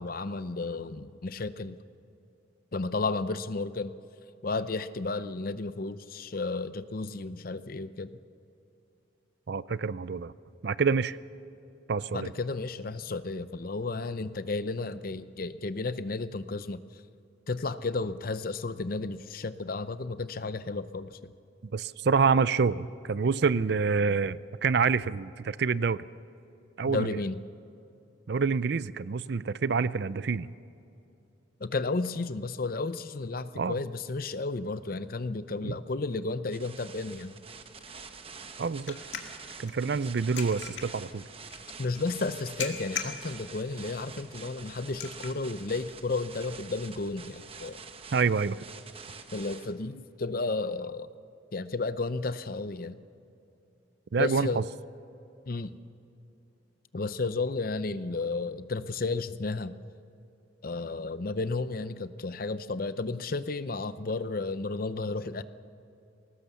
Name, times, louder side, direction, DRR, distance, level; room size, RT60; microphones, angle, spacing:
voice 1, 0.0-1.8 2.7-3.9 4.4-8.1 12.1-16.8 17.5-21.3 26.9-27.4 31.6-37.3 41.8-47.8 49.3-51.1 51.5-53.0 54.2-54.6 55.5-55.8 56.9-59.8 60.6-65.4, left 3 dB, 50° left, 13 dB, 0.6 m, -33 dB
voice 2, 9.5-10.3 10.6-11.2 11.9-12.3 21.7-26.0 26.8-27.2 28.3-30.5 33.6-33.8 35.6-35.8 38.6-39.0 39.6-41.2 48.1-48.6 54.1-54.6, right 5 dB, 55° right, 17 dB, 0.4 m, -27 dB
sound 1, 36.5-49.7, right 5 dB, 30° right, 0.9 m, -47 dB
sound 2, 37.1-48.4, left 6 dB, 70° left, 2.0 m, -44 dB
21.0 x 18.5 x 7.0 m, 2.7 s
head